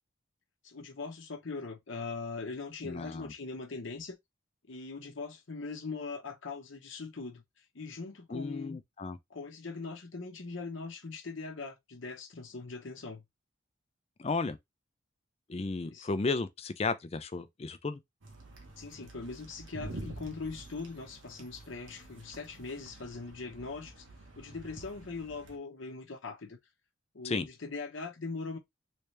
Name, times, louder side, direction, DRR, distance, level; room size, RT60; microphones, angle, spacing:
voice 1, 0.6-4.2 4.7-7.4 7.7-8.8 9.3-13.2 15.8-16.1 18.8-24.0 24.4-26.6 27.1-28.6, left 4 dB, 70° left, 0.8 m, -41 dB
voice 2, 2.8-3.3 8.3-9.2 14.2-14.6 15.5-18.0 27.2-27.5, left 3 dB, 30° left, 0.4 m, -34 dB
sound 1, 18.2-25.6, right 2 dB, 70° right, 1.0 m, -48 dB
3.3 x 2.8 x 3.2 m
head